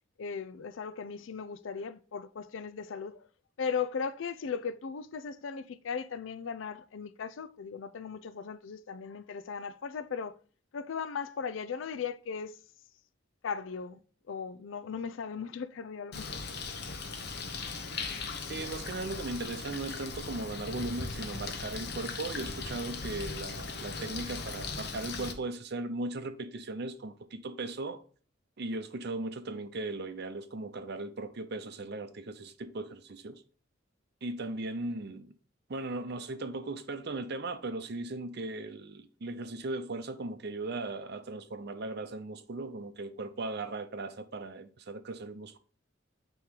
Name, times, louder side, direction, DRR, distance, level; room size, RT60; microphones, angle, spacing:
voice 1, 0.2-3.2 3.6-10.4 10.7-12.6 13.4-14.0 14.3-16.4, left 6 dB, 75° left, 0.4 m, -37 dB
Bird, 16.1-25.3, left 4 dB, 55° left, 0.9 m, -38 dB
voice 2, 18.5-28.0 28.6-33.4 34.2-35.3 35.7-45.6, right 2 dB, 55° right, 0.6 m, -38 dB
8.6 x 3.1 x 3.8 m
head